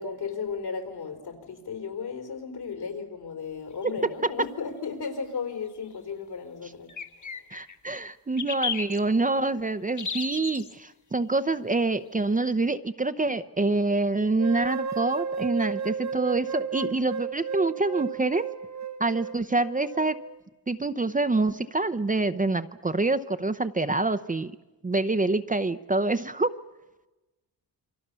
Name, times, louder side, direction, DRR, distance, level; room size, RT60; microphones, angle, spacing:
voice 1, 0.0-6.9 7.2-7.3, left 5 dB, 70° left, 5 dB, 4.5 m, -35 dB
sound 1, 3.9-4.0 6.9-7.8 8.4-9.0 10.0-10.7, left 5 dB, 45° left, 1.8 m, -33 dB
voice 2, 7.5-18.5 19.0-20.2 20.7-24.5 24.8-26.5, right 3 dB, 20° right, 10 dB, 0.8 m, -26 dB
sound 2, 14.4-20.4, right 6 dB, 45° right, 1.1 m, -33 dB
28.0 x 24.0 x 7.0 m, 1.1 s
cardioid pair, 90°, 40 cm